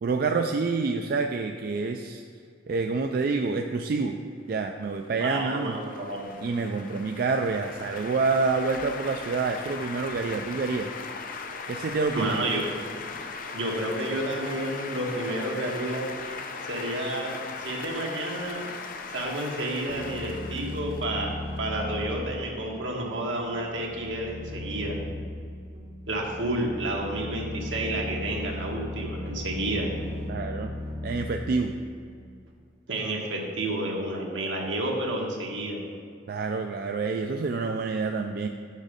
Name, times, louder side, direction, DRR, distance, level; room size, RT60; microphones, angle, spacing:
voice 1, 0.0-2.2 2.7-4.2 4.5-5.8 6.4-10.9 11.7-12.4 30.3-30.7 31.0-31.7 36.3-38.5, right 4 dB, 50° right, 4 dB, 0.3 m, -27 dB
sound 1, 4.9-21.6, left 4 dB, 45° left, 0.5 m, -39 dB
voice 2, 5.2-6.3 12.1-12.6 13.5-16.0 16.7-18.7 19.1-25.0 26.1-29.9 32.9-35.8, right 1 dB, 80° right, -1 dB, 1.4 m, -30 dB
sound 2, 19.9-32.4, left 1 dB, 35° right, 1.1 m, -37 dB
6.4 x 6.2 x 5.1 m, 2.2 s
head